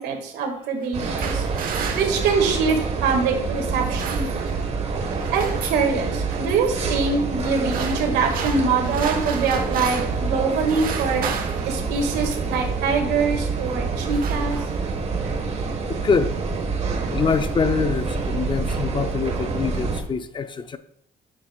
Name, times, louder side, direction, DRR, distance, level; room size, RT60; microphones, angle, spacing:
voice 1, 0.0-1.5 1.9-4.3 5.3-11.3 11.6-14.6, right 5 dB, 85° right, 3 dB, 2.0 m, -24 dB
sound 1, 0.8-3.0 3.7-4.7 4.9-5.9 6.3-6.7 7.4-10.2 10.5-12.6 13.4-13.6 13.9-15.0, right 6 dB, 55° right, 1.2 m, -34 dB
sound 2, 0.9-20.0, right 4 dB, 40° right, 1.4 m, -27 dB
voice 2, 15.9-16.4 17.1-20.8, left 5 dB, 30° left, 10 dB, 0.5 m, -24 dB
10.5 x 7.4 x 2.4 m, 0.69 s
cardioid pair, 110°, 17 cm